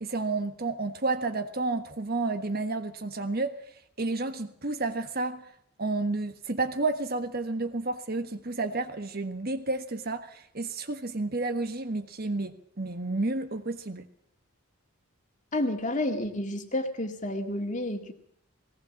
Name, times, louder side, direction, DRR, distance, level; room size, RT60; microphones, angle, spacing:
voice 1, 0.0-3.6 4.0-5.5 5.8-14.1, right 3 dB, 45° right, 1.4 m, -31 dB
voice 2, 15.5-18.1, left 1 dB, 35° left, 2.1 m, -30 dB
19.5 x 18.5 x 7.4 m
head